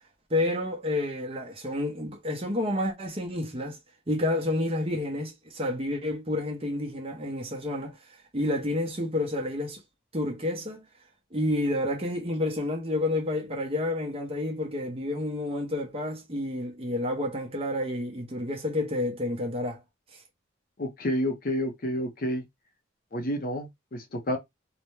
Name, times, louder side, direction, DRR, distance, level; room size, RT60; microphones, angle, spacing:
voice 1, 0.3-3.8 4.1-9.8 10.1-10.9 11.3-19.8, left 1 dB, 30° right, 0.7 m, -29 dB
voice 2, 20.8-22.4 23.1-24.4, equal, 45° left, 0.6 m, -30 dB
2.6 x 2.1 x 3.1 m
head